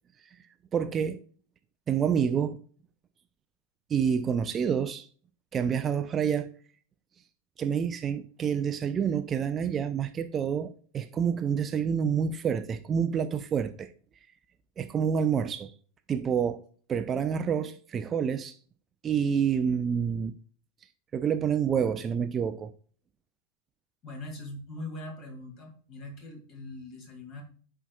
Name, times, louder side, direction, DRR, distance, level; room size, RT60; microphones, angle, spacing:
voice 1, 0.7-1.2 1.9-2.6 3.9-5.1 5.5-6.5 7.6-13.9 14.8-15.7 16.1-16.6 16.9-18.5 19.0-20.3 21.1-22.7, right 7 dB, 25° right, 0.4 m, -28 dB
voice 2, 24.0-27.4, left 2 dB, 35° left, 2.1 m, -41 dB
9.8 x 4.5 x 2.3 m
figure-of-eight pair, 90°, 0 cm